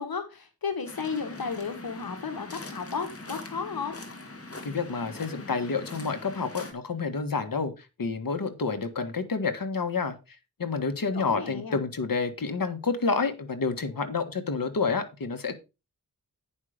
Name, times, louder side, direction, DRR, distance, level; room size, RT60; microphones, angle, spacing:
voice 1, 0.0-4.0 11.1-11.8, left 5 dB, 85° left, 6 dB, 1.6 m, -33 dB
Waves surf, 0.9-6.7, left 2 dB, 40° left, 2.0 m, -42 dB
voice 2, 4.6-10.1 10.6-15.5, left 4 dB, 70° left, 8 dB, 1.6 m, -29 dB
9.6 x 5.6 x 5.0 m, 0.27 s
wide cardioid pair, 60°, 35 cm